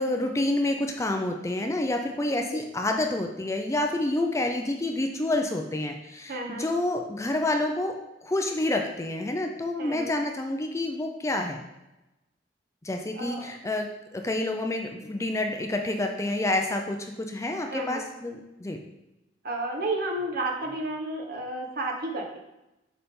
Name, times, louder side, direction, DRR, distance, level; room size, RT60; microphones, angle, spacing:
voice 1, 0.0-11.6 12.8-18.8, left 2 dB, 15° left, 3 dB, 0.5 m, -28 dB
voice 2, 6.3-6.7 9.8-10.1 13.2-13.5 17.7-18.1 19.4-22.4, right 2 dB, 55° right, 2 dB, 1.0 m, -32 dB
6.8 x 4.1 x 3.7 m, 0.95 s
head